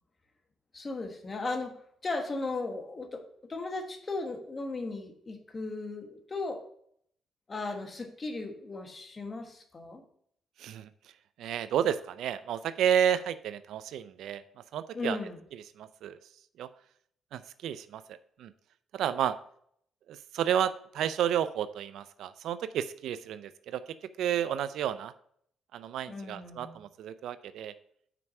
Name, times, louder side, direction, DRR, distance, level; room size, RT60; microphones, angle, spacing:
voice 1, 0.7-1.8 2.0-3.2 3.5-6.6 7.5-10.0 14.9-15.4 26.1-26.8, left 3 dB, 30° left, 4 dB, 1.3 m, -36 dB
voice 2, 10.6-10.9 11.4-14.4 14.7-15.2 15.5-16.2 16.6-16.7 17.3-18.5 18.9-19.4 20.1-25.1 25.7-27.7, right 9 dB, 80° right, 14 dB, 0.4 m, -31 dB
6.0 x 4.5 x 5.3 m, 0.66 s
cardioid pair, 90°, 0 cm